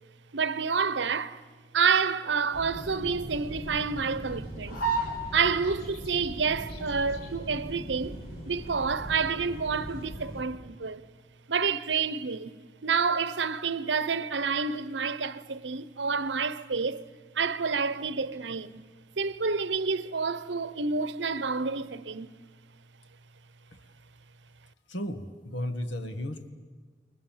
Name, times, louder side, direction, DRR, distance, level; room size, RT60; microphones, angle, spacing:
voice 1, 0.3-1.4 1.7-4.8 5.3-8.2 8.5-11.0 11.5-12.5 12.8-17.0 17.3-18.8 19.2-22.3, right 5 dB, 75° right, 0.9 m, -28 dB
sound 1, 2.5-10.4, right 2 dB, 55° left, 4.2 m, -37 dB
voice 2, 24.9-26.5, left 1 dB, 80° left, 1.8 m, -34 dB
28.5 x 22.0 x 7.4 m
head